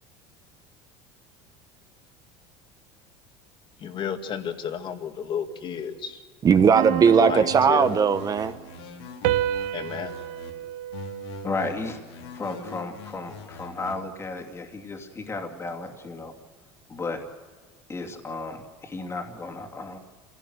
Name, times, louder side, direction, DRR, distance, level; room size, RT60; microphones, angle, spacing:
voice 1, 3.8-6.2 7.0-8.0 9.7-10.3, left 7 dB, 40° left, 6 dB, 2.2 m, -32 dB
voice 2, 6.4-8.5, right 6 dB, 30° right, 11 dB, 1.0 m, -18 dB
sound 1, 6.7-8.5 9.2-11.9, right 13 dB, 70° right, 0.8 m, -30 dB
sound 2, 7.5-10.5 10.9-13.9, left 5 dB, 85° left, 3.3 m, -42 dB
voice 3, 11.4-16.3 16.9-17.2 17.9-20.0, left 3 dB, 20° left, 3 dB, 2.7 m, -34 dB
26.5 x 17.0 x 8.1 m, 1.5 s
supercardioid pair, 120°, 13 cm